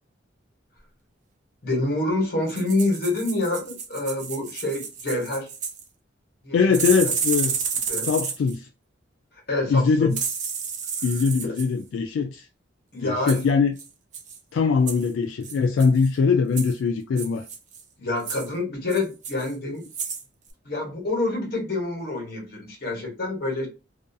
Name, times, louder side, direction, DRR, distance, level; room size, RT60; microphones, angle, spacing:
voice 1, 1.6-5.5 6.4-7.1 7.4-7.5 7.9-8.1 9.5-10.1 12.9-13.4 18.0-19.9 20.6-23.7, left 2 dB, 55° left, 1.1 m, -27 dB
sound 1, 2.5-5.8 6.7-8.6 10.1-11.7 13.3-13.5 13.8-13.9 14.1-14.4 14.9-15.1 15.4-16.1 16.6-16.7 17.2-17.8 18.2-18.5 18.9-19.5 19.8-20.2 20.5-20.6, right 6 dB, 40° right, 0.5 m, -31 dB
voice 2, 6.5-7.6 8.0-8.7 9.7-10.2 11.0-12.5 13.0-13.7 14.5-17.5, left 5 dB, 80° left, 0.3 m, -22 dB
2.5 x 2.3 x 2.6 m
head